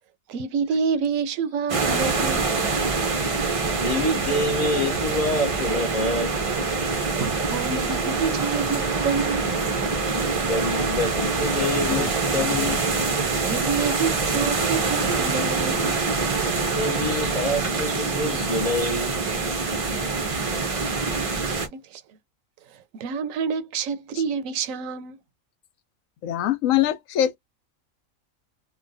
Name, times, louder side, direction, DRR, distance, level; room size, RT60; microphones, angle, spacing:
voice 1, 0.3-2.5 6.8-9.5 13.4-16.0 21.4-22.0 23.0-25.2, right 6 dB, 80° right, 0.9 m, -28 dB
sound 1, 1.7-21.7, right 4 dB, 45° right, 0.4 m, -25 dB
voice 2, 3.8-6.3 10.5-12.8 16.7-19.2, left 2 dB, 45° left, 0.5 m, -26 dB
voice 3, 26.2-27.4, left 12 dB, 80° left, 1.0 m, -22 dB
3.0 x 2.2 x 2.5 m
omnidirectional pair, 1.4 m